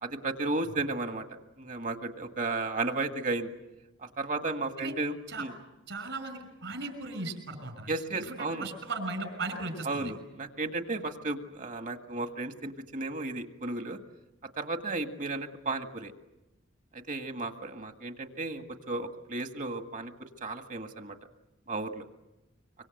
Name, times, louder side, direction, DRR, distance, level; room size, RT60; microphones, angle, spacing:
voice 1, 0.0-1.3 1.6-3.5 4.2-5.5 7.9-8.7 9.8-14.0 14.6-16.1 16.9-21.2 21.7-22.1, right 3 dB, 45° right, 6 dB, 1.9 m, -34 dB
voice 2, 5.9-10.1, right 3 dB, 70° right, 6 dB, 6.1 m, -37 dB
25.5 x 25.0 x 7.9 m, 0.98 s
head